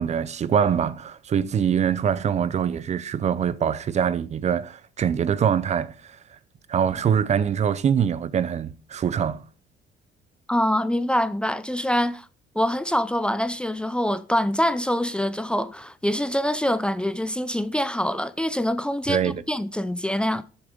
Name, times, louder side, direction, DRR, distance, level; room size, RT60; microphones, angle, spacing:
voice 1, 0.0-6.2 6.7-9.4 19.1-19.4, right 8 dB, 40° right, 0.7 m, -24 dB
voice 2, 10.5-12.3 12.5-20.4, equal, 5° left, 0.6 m, -25 dB
12.0 x 7.2 x 5.3 m
cardioid pair, 110°, 17 cm